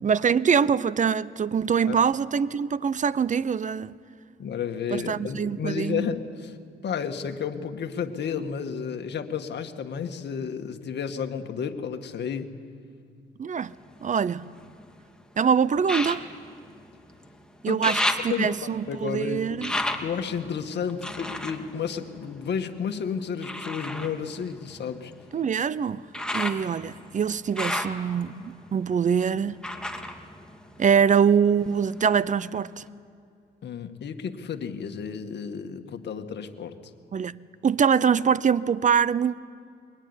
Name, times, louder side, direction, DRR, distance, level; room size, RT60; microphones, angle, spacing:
voice 1, 0.0-3.9 4.9-6.0 13.4-13.8 14.0-14.5 15.4-16.3 17.6-19.7 25.3-26.1 26.3-29.6 30.8-32.8 37.1-39.4, right 7 dB, 40° right, 0.6 m, -24 dB
voice 2, 4.4-6.5 6.8-12.5 17.7-17.9 18.3-18.5 18.9-25.1 33.6-36.8, left 7 dB, 60° left, 2.0 m, -32 dB
sound 1, 13.6-15.0 15.8-17.3 17.6-22.8 23.4-31.2 31.6-32.4 32.9-33.0, left 1 dB, 5° left, 2.4 m, -34 dB
24.5 x 23.5 x 10.0 m
cardioid pair, 90°, 20 cm